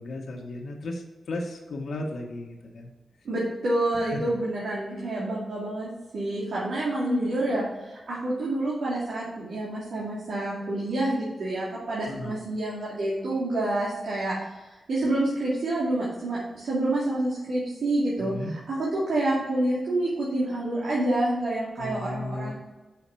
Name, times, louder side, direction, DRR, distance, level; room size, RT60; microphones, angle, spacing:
voice 1, 0.0-2.9 4.1-4.2 12.1-12.3 18.2-18.6 21.8-22.5, left 1 dB, 75° left, -1 dB, 1.4 m, -35 dB
voice 2, 3.2-22.5, right 1 dB, 85° right, -7 dB, 2.3 m, -28 dB
5.9 x 5.9 x 5.7 m, 1.1 s
wide cardioid pair, 120°, 0 cm